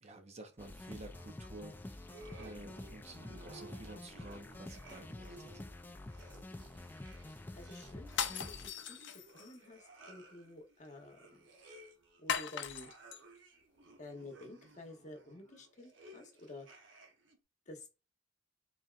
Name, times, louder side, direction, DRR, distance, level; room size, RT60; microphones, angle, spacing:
voice 1, 0.0-5.6, right 2 dB, 35° right, 0.6 m, -52 dB
sound 1, 0.6-8.7, left 1 dB, 10° left, 0.3 m, -49 dB
sound 2, 2.0-17.4, right 2 dB, 75° right, 0.9 m, -58 dB
voice 2, 7.5-9.0 9.3-11.2 12.2-12.9 14.0-16.7 17.7-18.0, left 2 dB, 40° left, 1.0 m, -51 dB
sound 3, 8.1-9.6 12.3-13.2, left 8 dB, 65° left, 0.5 m, -38 dB
4.0 x 3.5 x 2.4 m
head